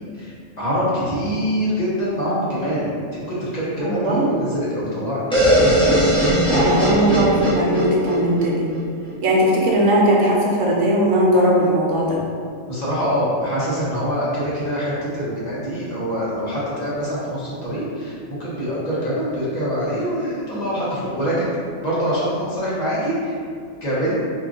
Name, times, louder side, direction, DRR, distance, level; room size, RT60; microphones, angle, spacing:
voice 1, 0.1-5.2 12.7-21.6 21.8-23.4 23.8-24.2, equal, 35° left, -9 dB, 1.0 m, -24 dB
voice 2, 3.8-4.3 6.4-8.7 9.2-12.2, right 1 dB, 80° right, -3 dB, 1.1 m, -18 dB
sound 1, 5.3-9.1, equal, 5° left, 0.5 m, -19 dB
2.9 x 2.4 x 3.7 m, 2.2 s
omnidirectional pair, 1.3 m